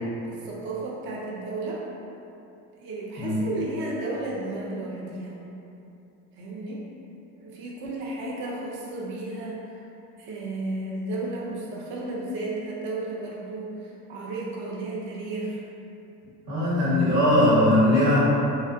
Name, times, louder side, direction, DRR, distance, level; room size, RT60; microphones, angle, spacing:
voice 1, 0.2-1.8 2.8-5.4 6.3-6.8 7.4-9.8 10.2-15.6, right 2 dB, 30° right, -4 dB, 0.4 m, -33 dB
voice 2, 16.5-18.2, left 1 dB, 80° right, -11 dB, 1.4 m, -20 dB
2.7 x 2.1 x 2.4 m, 2.8 s
hypercardioid pair, 75°, 45 cm